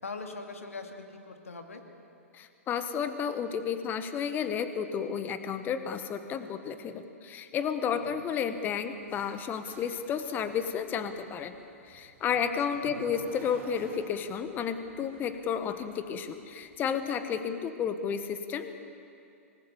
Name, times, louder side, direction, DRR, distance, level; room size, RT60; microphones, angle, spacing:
voice 1, 0.0-1.8 7.9-8.2 12.3-12.4 12.7-12.8, left 3 dB, 75° left, 4 dB, 2.4 m, -42 dB
voice 2, 2.3-11.6 11.8-18.7, left 7 dB, 25° left, 10 dB, 1.5 m, -32 dB
sound 1, 8.9-17.2, right 5 dB, 25° right, 3.1 m, -53 dB
26.0 x 20.0 x 7.1 m, 2.5 s
figure-of-eight pair, 110°, 8 cm